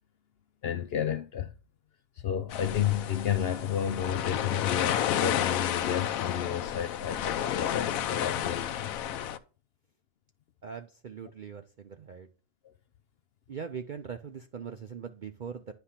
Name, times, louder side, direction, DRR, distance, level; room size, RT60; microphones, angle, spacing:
voice 1, 0.6-1.5 2.2-8.9, left 9 dB, 60° left, 0.6 m, -31 dB
sound 1, 2.5-9.4, left 10 dB, 90° left, 1.0 m, -31 dB
voice 2, 10.6-12.3 13.5-15.7, right 7 dB, 60° right, 0.5 m, -41 dB
9.9 x 3.4 x 5.7 m
omnidirectional pair, 1.4 m